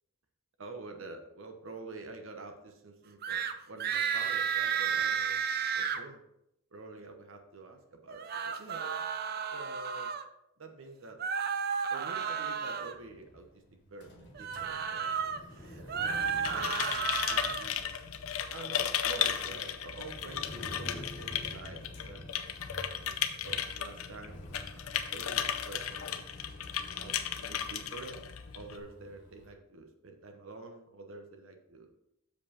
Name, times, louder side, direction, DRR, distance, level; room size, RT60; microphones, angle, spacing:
voice 1, 0.6-5.5 5.7-6.2 6.7-9.0 9.5-10.1 10.6-11.2 11.9-13.6 13.9-15.2 15.5-17.8 18.5-22.4 22.9-23.1 23.4-26.2 27.0-31.9, right 3 dB, 65° right, 5 dB, 0.9 m, -48 dB
sound 1, 3.2-3.5 3.8-6.0 8.1-10.2 11.2-12.9 14.3-15.4 15.8-17.7, right 7 dB, 45° right, 0.5 m, -32 dB
sound 2, 12.9-29.5, equal, 55° left, 1.4 m, -50 dB
sound 3, 16.1-28.8, left 9 dB, 80° left, 0.6 m, -35 dB
7.1 x 5.1 x 4.2 m, 0.82 s
head